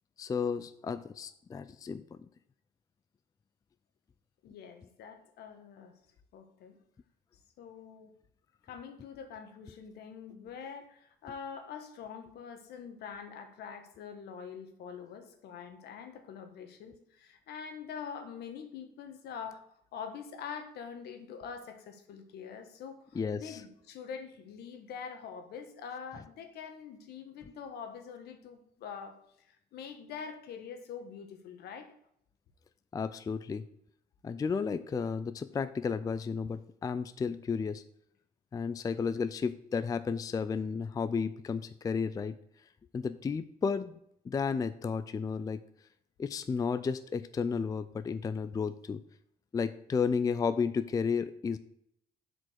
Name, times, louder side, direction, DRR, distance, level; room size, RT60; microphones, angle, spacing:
voice 1, 0.2-2.3 23.1-23.6 32.9-33.6 34.2-37.8 38.5-42.4 42.9-44.0 44.3-45.6 46.2-49.0 49.5-51.6, left 5 dB, 20° left, 13 dB, 0.4 m, -33 dB
voice 2, 4.4-5.9 6.3-6.8 7.6-8.1 8.6-19.7 19.9-31.9, left 6 dB, 70° left, 7 dB, 1.4 m, -45 dB
7.6 x 5.1 x 6.4 m, 0.72 s
cardioid pair, 110°, 17 cm